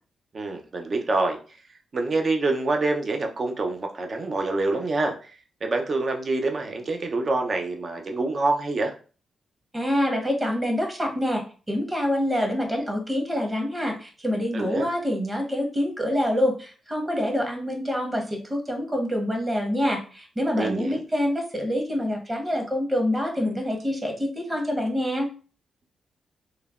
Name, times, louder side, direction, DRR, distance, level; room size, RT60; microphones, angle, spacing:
voice 1, 0.3-1.4 1.9-5.3 5.6-8.9 14.5-14.9 20.5-21.0, right 2 dB, 50° right, 3 dB, 0.5 m, -26 dB
voice 2, 9.7-25.3, equal, 25° right, 2 dB, 1.0 m, -26 dB
3.1 x 2.1 x 2.4 m, 0.37 s
cardioid pair, 65°, 0 cm